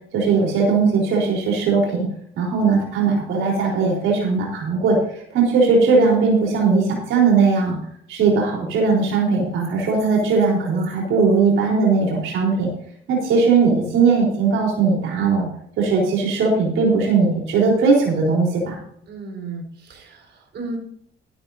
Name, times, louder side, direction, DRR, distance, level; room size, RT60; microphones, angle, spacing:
voice 1, 0.1-2.1 2.3-7.8 8.1-12.7 13.1-15.5 15.8-18.8, right 4 dB, 90° right, -2 dB, 4.0 m, -19 dB
voice 2, 19.1-20.8, right 3 dB, 60° right, 1 dB, 4.5 m, -34 dB
13.5 x 12.0 x 2.7 m, 0.67 s
cardioid pair, 90°, 20 cm